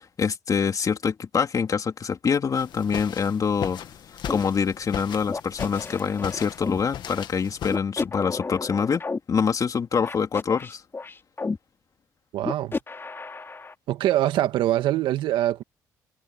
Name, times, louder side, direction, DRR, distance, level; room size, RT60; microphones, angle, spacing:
voice 1, 0.0-3.8 4.3-9.0 9.3-10.8, left 6 dB, 45° left, 3.4 m, -25 dB
sound 1, 2.6-7.8, left 10 dB, 65° left, 2.3 m, -37 dB
sound 2, 4.3-4.4 5.3-6.8 7.7-9.2 10.0-11.6 12.4-13.7, left 3 dB, 30° left, 3.0 m, -32 dB
voice 2, 12.3-12.8 13.9-15.6, right 13 dB, 80° right, 1.8 m, -23 dB
supercardioid pair, 70°, 8 cm